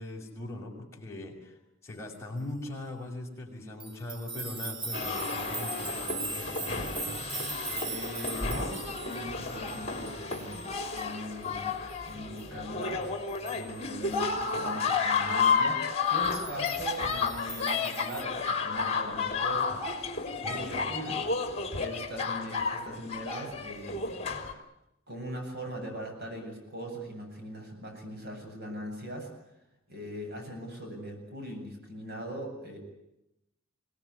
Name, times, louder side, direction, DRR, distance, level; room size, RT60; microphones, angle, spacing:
voice 1, 0.0-6.9 20.4-21.0, left 1 dB, 15° left, -2 dB, 6.0 m, -41 dB
sound 1, 3.8-11.1 11.4-11.5 11.9-12.0 12.4-12.5 12.8-12.9 13.3-13.8 16.2-18.2, right 3 dB, 25° right, 1.4 m, -40 dB
sound 2, 4.9-24.5, left 5 dB, 30° left, 3.5 m, -32 dB
voice 2, 7.8-13.1 13.5-19.8 20.4-21.2 21.8-24.3 25.1-29.3 29.9-32.8, right 1 dB, 50° right, 3 dB, 8.0 m, -40 dB
25.0 x 18.5 x 9.7 m, 0.85 s
head